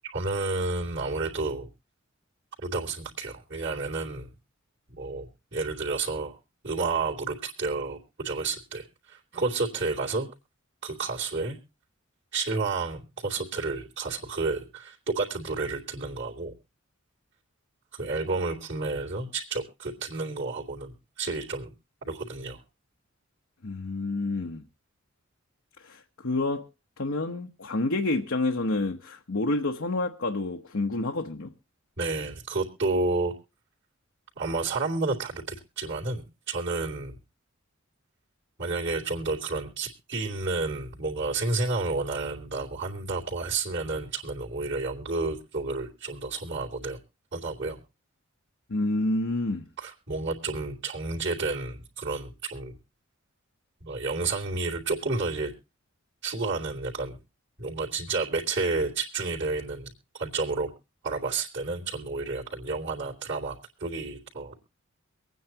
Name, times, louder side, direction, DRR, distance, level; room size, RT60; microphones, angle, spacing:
voice 1, 0.0-1.7 2.6-4.3 4.9-6.4 6.6-10.3 10.8-11.6 12.3-16.5 17.9-21.7 22.0-22.6 32.0-33.3 34.4-37.2 38.6-47.0 47.3-47.8 49.8-52.8 53.8-55.5 56.2-57.2 57.6-60.7 61.0-64.6, right 3 dB, 55° right, 2.9 m, -31 dB
voice 2, 23.6-24.6 25.8-26.7 27.0-31.5 48.7-49.7, left 2 dB, 65° left, 1.0 m, -28 dB
24.5 x 9.4 x 2.9 m
head